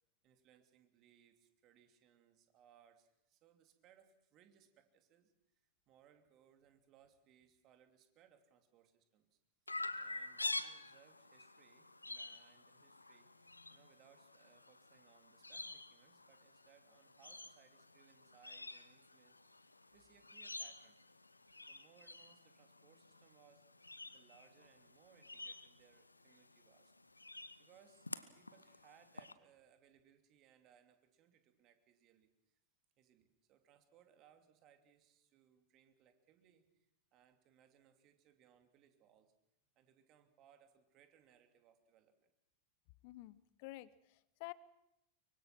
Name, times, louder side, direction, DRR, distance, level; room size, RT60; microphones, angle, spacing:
voice 1, 0.2-9.4 10.0-21.0 21.6-26.9 27.6-32.6 33.0-39.3 39.7-42.3, right 9 dB, 35° right, 7 dB, 2.9 m, -69 dB
Chirp tweet, 9.7-29.3, left 2 dB, 80° left, 0.9 m, -49 dB
voice 2, 43.0-44.5, left 19 dB, 45° left, 19 dB, 0.8 m, -51 dB
24.0 x 24.0 x 6.1 m, 0.82 s
figure-of-eight pair, 90°, 0 cm